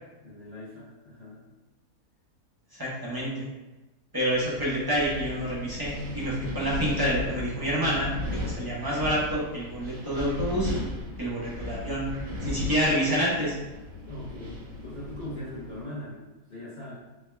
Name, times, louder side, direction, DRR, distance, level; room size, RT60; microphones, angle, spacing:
voice 1, 0.2-1.4 14.1-16.9, left 1 dB, 40° left, -9 dB, 0.6 m, -40 dB
voice 2, 2.7-3.5 4.1-10.7 11.2-12.1 12.4-13.5, equal, 25° right, -8 dB, 0.5 m, -28 dB
Wind, 4.3-15.8, left 2 dB, 65° right, 1.1 m, -36 dB
3.5 x 2.2 x 3.2 m, 1.1 s
omnidirectional pair, 1.7 m